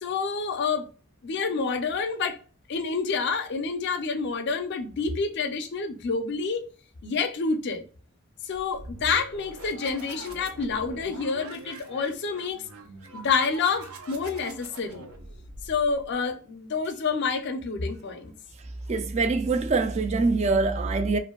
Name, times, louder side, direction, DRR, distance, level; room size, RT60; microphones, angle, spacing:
voice 1, 0.0-0.9 1.2-2.4 2.7-6.7 7.0-7.8 8.4-12.6 13.1-15.1 15.6-18.3, left 5 dB, 55° left, 0.5 m, -28 dB
sound 1, 8.5-16.2, right 2 dB, 90° right, 0.5 m, -43 dB
voice 2, 18.9-21.2, right 3 dB, 30° right, 0.3 m, -24 dB
2.6 x 2.4 x 2.2 m
head